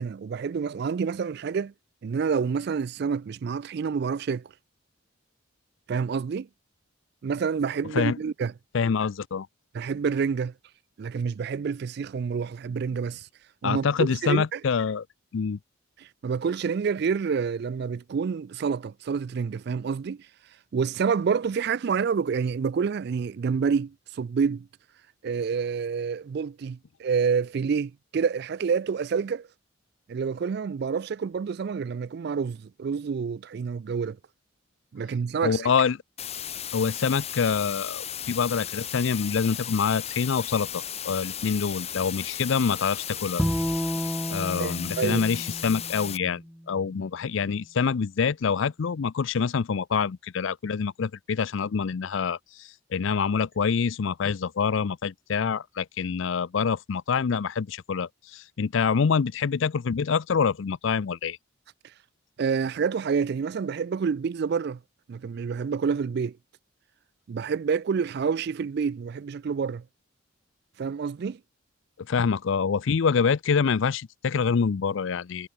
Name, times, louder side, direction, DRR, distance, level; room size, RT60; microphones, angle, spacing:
voice 1, 0.0-1.7 2.0-4.5 5.9-6.5 7.2-8.5 9.7-10.5 11.0-13.3 13.6-14.6 16.0-20.2 20.7-24.7 25.2-29.5 30.1-34.2 34.9-35.6 44.4-45.2 62.4-64.8 65.1-66.4 67.3-69.8 70.8-71.4, right 6 dB, 50° right, 0.3 m, -28 dB
voice 2, 8.7-9.5 13.6-15.0 15.3-15.6 35.4-36.0 36.7-43.4 44.3-61.4 72.1-75.5, left 6 dB, 65° left, 0.4 m, -26 dB
sound 1, 36.2-46.2, left 10 dB, 30° left, 1.3 m, -35 dB
Bowed string instrument, 43.4-46.7, equal, ahead, 0.7 m, -31 dB
head